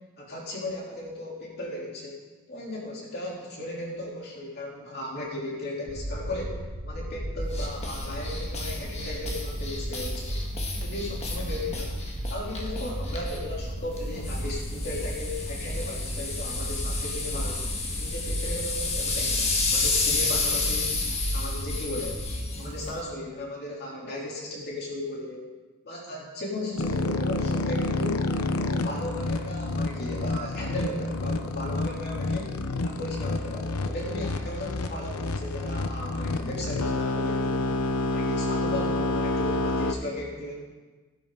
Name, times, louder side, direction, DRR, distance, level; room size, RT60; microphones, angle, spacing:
voice 1, 0.2-2.2 2.5-10.4 10.7-11.9 12.3-17.6 18.0-20.9 21.3-22.3 22.6-25.4 25.8-28.2 28.7-32.5 32.8-37.7 38.1-40.5, left 1 dB, 45° left, -3 dB, 3.3 m, -36 dB
sound 1, 5.9-22.4, right 1 dB, 75° right, 1.6 m, -34 dB
sound 2, 7.5-23.0, left 3 dB, 30° left, 1.5 m, -32 dB
sound 3, 26.8-39.9, left 2 dB, 85° left, 0.8 m, -28 dB
16.0 x 11.5 x 3.9 m, 1.3 s
head